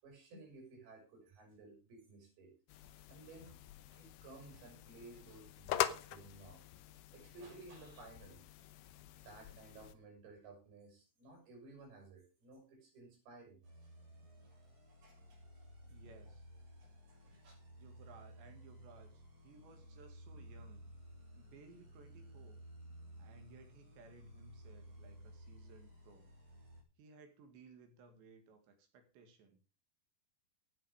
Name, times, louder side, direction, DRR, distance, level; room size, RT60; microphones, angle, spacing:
voice 1, 0.0-2.5 2.8-3.6 3.9-6.6 7.1-8.7 9.2-13.6 15.0-15.6 16.8-17.5, right 3 dB, 55° right, 2 dB, 7.9 m, -56 dB
sound 1, 2.7-9.9, left 13 dB, 75° left, 2.7 m, -44 dB
sound 2, 13.6-26.8, equal, 35° right, 4.6 m, -56 dB
voice 2, 15.9-16.5 17.8-20.9 21.3-22.6 23.2-26.3 27.0-29.6, right 4 dB, 70° right, 7 dB, 4.3 m, -60 dB
13.5 x 9.3 x 5.0 m, 0.31 s
omnidirectional pair, 5.3 m